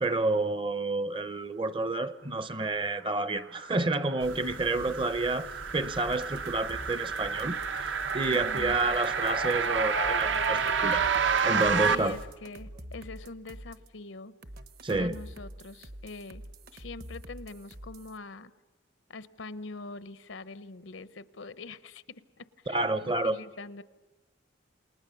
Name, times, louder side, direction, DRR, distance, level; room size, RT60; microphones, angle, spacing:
voice 1, 0.0-5.5 5.7-7.6 8.1-11.0 11.4-12.2 14.8-15.2 22.7-23.4, right 2 dB, 25° right, 0.7 m, -29 dB
sound 1, 3.6-12.0, right 5 dB, 70° right, 0.9 m, -29 dB
sound 2, 4.2-12.3, right 1 dB, 90° right, 3.2 m, -46 dB
sound 3, 6.1-9.7 10.2-13.9 14.4-18.2, right 1 dB, 50° right, 1.1 m, -46 dB
voice 2, 8.2-8.8 11.9-14.3 14.9-16.4 16.7-18.5 19.1-23.8, left 3 dB, 75° left, 0.8 m, -44 dB
28.5 x 19.5 x 6.9 m
head